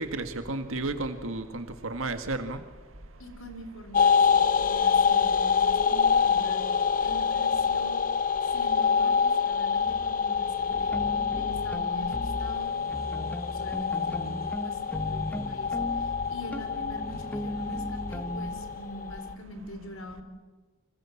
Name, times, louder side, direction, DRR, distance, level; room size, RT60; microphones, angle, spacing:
voice 1, 0.0-2.6, right 2 dB, 75° right, 8 dB, 1.9 m, -32 dB
voice 2, 3.2-6.6 7.0-8.1 8.4-11.0 11.3-14.8 15.0-20.2, equal, 75° left, 8 dB, 3.8 m, -44 dB
sound 1, 3.9-19.3, left 6 dB, 40° left, 0.7 m, -26 dB
Electric bass guitar loop, 9.8-10.1 10.7-12.6 12.9-18.5, equal, 5° left, 1.3 m, -37 dB
sound 2, 10.2-18.9, right 1 dB, 30° right, 5.7 m, -51 dB
29.5 x 25.5 x 7.3 m, 1.3 s
head